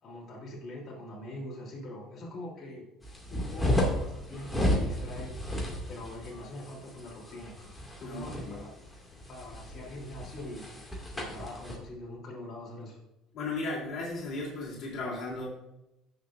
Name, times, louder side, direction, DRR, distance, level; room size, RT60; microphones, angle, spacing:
voice 1, 0.0-2.9 3.3-5.3 5.9-7.6 8.0-8.7 9.3-10.7 11.1-13.0, left 1 dB, 35° left, -5 dB, 3.1 m, -43 dB
sound 1, 3.0-11.8, left 1 dB, 10° left, 2.1 m, -33 dB
voice 2, 8.0-8.7 13.3-15.4, left 2 dB, 55° left, -4 dB, 3.1 m, -36 dB
16.5 x 6.5 x 2.5 m, 0.93 s
cardioid pair, 130°, 0 cm